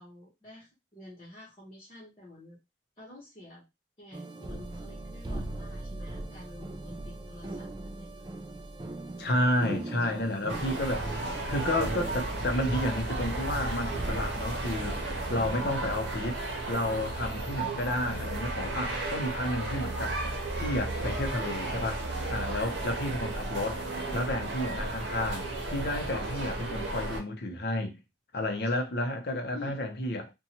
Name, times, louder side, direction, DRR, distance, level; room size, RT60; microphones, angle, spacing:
voice 1, 0.0-2.6 3.0-3.7 4.0-8.1 29.5-29.8, left 2 dB, 30° left, 0.9 m, -49 dB
sound 1, 4.1-16.1, right 1 dB, 25° right, 0.3 m, -39 dB
voice 2, 9.2-11.2 11.4-16.4 16.7-20.2 20.6-22.0 22.3-23.8 24.1-28.0 28.3-30.3, left 1 dB, 55° left, 0.6 m, -31 dB
sound 2, 10.5-27.2, right 2 dB, 70° right, 0.8 m, -34 dB
2.7 x 2.2 x 2.8 m
head